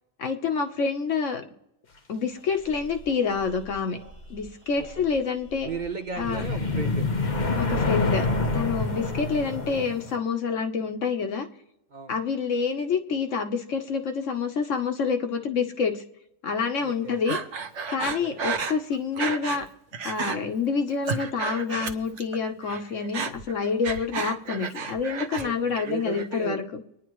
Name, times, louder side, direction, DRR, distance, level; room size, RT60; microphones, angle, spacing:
voice 1, 0.2-1.4 2.1-4.0 4.3-5.7 6.2-6.4 7.6-8.3 8.5-11.5 12.1-16.0 16.4-17.4 17.9-19.6 20.0-26.8, left 5 dB, 80° left, 5 dB, 1.4 m, -27 dB
sound 1, 2.4-9.7, right 1 dB, 10° left, 6.9 m, -48 dB
voice 2, 5.6-7.1 8.9-9.2 11.9-12.1 16.8-17.2 18.0-18.4 25.4-26.6, right 5 dB, 40° right, 6 dB, 1.0 m, -36 dB
sound 2, 6.2-10.2, left 3 dB, 40° left, 1.2 m, -26 dB
Breathing, 17.3-19.7 19.9-20.4 20.8-22.4 22.6-25.5 25.8-26.4, right 5 dB, 70° right, 1.1 m, -32 dB
24.5 x 10.0 x 3.1 m, 0.85 s
omnidirectional pair, 1.3 m